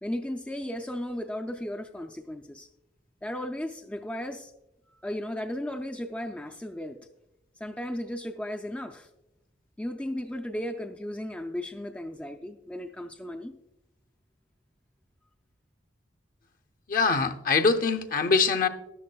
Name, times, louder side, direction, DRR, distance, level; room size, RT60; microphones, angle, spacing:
voice 1, 0.0-2.7 3.2-4.5 5.0-7.0 7.6-9.1 9.8-13.6, left 1 dB, 5° left, 5 dB, 0.4 m, -35 dB
voice 2, 16.9-18.7, left 4 dB, 45° left, 8 dB, 0.6 m, -23 dB
13.0 x 12.0 x 2.2 m, 0.92 s
head